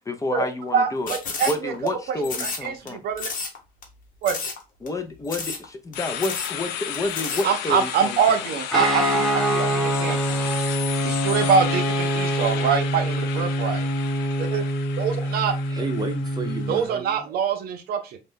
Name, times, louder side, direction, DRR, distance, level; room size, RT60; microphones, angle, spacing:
voice 1, 0.1-1.1 1.4-3.0 4.8-8.4, left 2 dB, 20° left, 0.5 m, -29 dB
voice 2, 0.7-1.7 2.1-3.3 4.2-4.5 7.4-10.4 11.0-13.9 14.4-14.7 15.0-15.5 16.7-18.2, right 6 dB, 65° right, 0.6 m, -24 dB
sound 1, 1.1-1.9 2.2-2.9 3.2-3.6 3.8-3.9 4.2-4.6 4.9-5.0 5.3-5.6 5.9-6.0 6.2-6.5 6.9-7.4, left 4 dB, 55° left, 0.9 m, -31 dB
sound 2, 5.9-17.0, left 10 dB, 85° left, 0.4 m, -34 dB
Guitar, 8.7-16.8, equal, ahead, 1.0 m, -25 dB
voice 3, 15.2-17.4, right 3 dB, 25° right, 0.8 m, -33 dB
2.6 x 2.1 x 3.5 m
cardioid pair, 110°, 17 cm